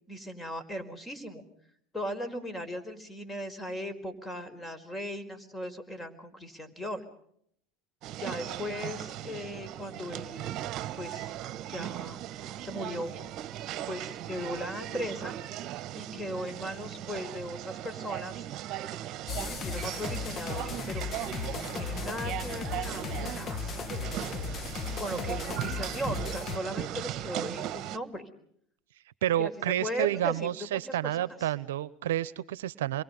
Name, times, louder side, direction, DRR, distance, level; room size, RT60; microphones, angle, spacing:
voice 1, 0.1-1.4 1.9-7.0 8.2-10.7 11.0-11.3 11.7-12.2 12.6-13.1 13.9-15.4 15.9-18.5 19.4-21.1 21.4-23.7 25.0-28.3 29.4-31.5, equal, 15° left, 12 dB, 4.9 m, -38 dB
sound 1, 8.0-28.0, right 13 dB, 50° right, 1.3 m, -38 dB
sound 2, 19.3-26.6, left 6 dB, 35° left, 1.4 m, -36 dB
voice 2, 29.2-33.0, right 12 dB, 80° right, 19 dB, 0.9 m, -30 dB
29.0 x 23.0 x 5.4 m, 0.69 s
hypercardioid pair, 85°, 0 cm